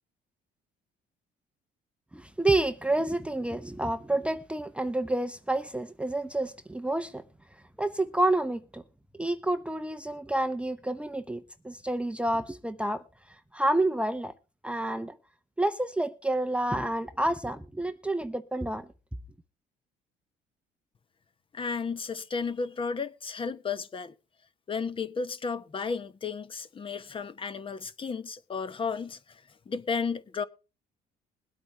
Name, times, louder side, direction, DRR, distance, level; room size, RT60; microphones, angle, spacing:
voice 1, 2.1-7.2 7.8-8.8 9.2-13.0 13.5-14.3 14.6-15.2 15.6-18.9, right 1 dB, 5° right, 0.7 m, -29 dB
voice 2, 21.5-24.1 24.7-30.4, left 5 dB, 30° left, 1.1 m, -33 dB
21.5 x 8.6 x 3.3 m
cardioid pair, 110°, 17 cm